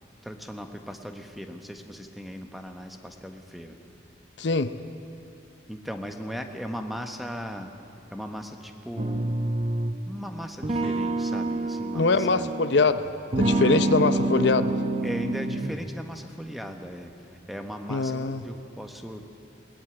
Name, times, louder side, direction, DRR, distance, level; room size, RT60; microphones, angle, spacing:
voice 1, 0.2-3.8 5.7-7.7 8.1-9.4 10.1-12.5 15.0-19.2, equal, ahead, 5 dB, 1.2 m, -37 dB
voice 2, 4.4-4.7 11.9-13.1 13.4-14.7 17.9-18.4, left 3 dB, 65° left, 11 dB, 0.7 m, -23 dB
sound 1, 9.0-10.1 10.6-12.9 13.3-15.9, right 2 dB, 30° right, 0.8 m, -27 dB
21.0 x 19.5 x 9.0 m, 2.8 s
head